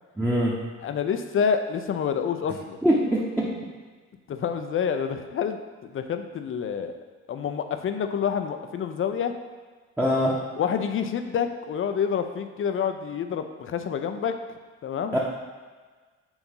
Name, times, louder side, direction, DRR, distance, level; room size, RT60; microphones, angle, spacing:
voice 1, 0.2-0.6 2.8-3.5 10.0-10.4 15.1-15.2, equal, 5° right, -7 dB, 1.0 m, -23 dB
voice 2, 0.8-2.8 4.3-7.0 7.3-9.3 10.5-14.4 14.8-15.2, left 7 dB, 45° left, 8 dB, 0.6 m, -28 dB
7.1 x 2.7 x 5.5 m, 1.4 s
cardioid pair, 90°, 30 cm